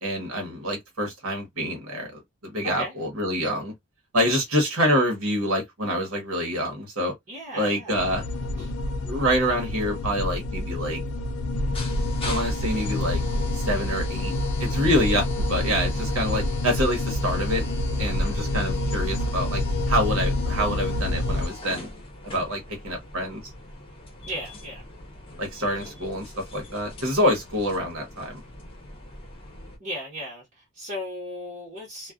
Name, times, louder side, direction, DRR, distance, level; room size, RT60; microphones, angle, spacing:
voice 1, 0.0-3.7 4.1-7.1 7.5-8.2 8.6-8.7 9.0-11.0 12.3-13.2 13.5-14.3 14.6-17.6 18.0-19.6 19.9-21.9 22.2-23.4 25.4-26.2 26.5-28.4, equal, 75° right, 1.0 m, -26 dB
voice 2, 7.3-8.0 8.6-8.7 24.3-24.8 29.8-32.1, left 1 dB, 45° right, 1.0 m, -36 dB
sound 1, 7.9-21.5, left 1 dB, 90° left, 0.4 m, -27 dB
sound 2, 11.5-29.8, left 2 dB, 25° left, 0.8 m, -40 dB
2.4 x 2.2 x 2.3 m
head